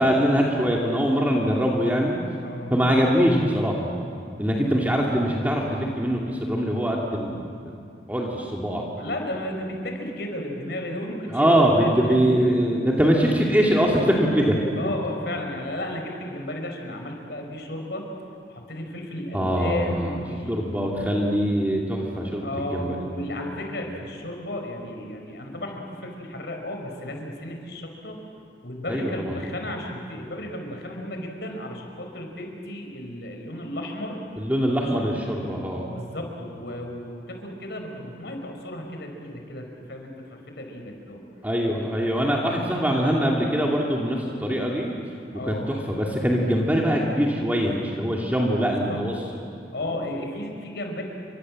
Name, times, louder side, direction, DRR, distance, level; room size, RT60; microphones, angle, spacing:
voice 1, 0.0-2.2 2.7-3.9 4.4-7.7 8.1-8.9 11.3-14.6 19.3-20.1 20.5-23.2 28.9-29.4 34.4-35.9 41.4-44.9 45.4-49.1, equal, 10° right, -2 dB, 2.6 m, -23 dB
voice 2, 9.0-12.6 14.8-18.0 18.5-20.9 22.4-28.2 28.6-34.2 34.7-34.9 35.9-41.2 45.3-45.7 48.7-49.0 49.7-51.0, left 1 dB, 65° left, 3 dB, 5.4 m, -34 dB
30.0 x 26.0 x 7.7 m, 2.5 s
head